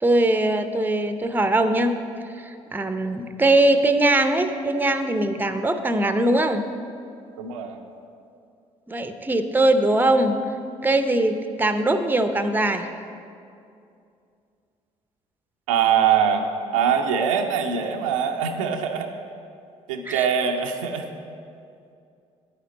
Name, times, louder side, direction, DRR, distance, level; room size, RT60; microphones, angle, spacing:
voice 1, 0.0-1.9 2.4-6.6 8.9-10.4 10.8-12.9 20.1-20.3, right 2 dB, 10° right, 8 dB, 0.7 m, -21 dB
voice 2, 7.4-7.8 15.7-16.5 16.7-19.1 19.9-21.0, right 7 dB, 80° right, 3 dB, 0.6 m, -22 dB
10.0 x 9.3 x 4.1 m, 2.5 s
figure-of-eight pair, 45°, 16 cm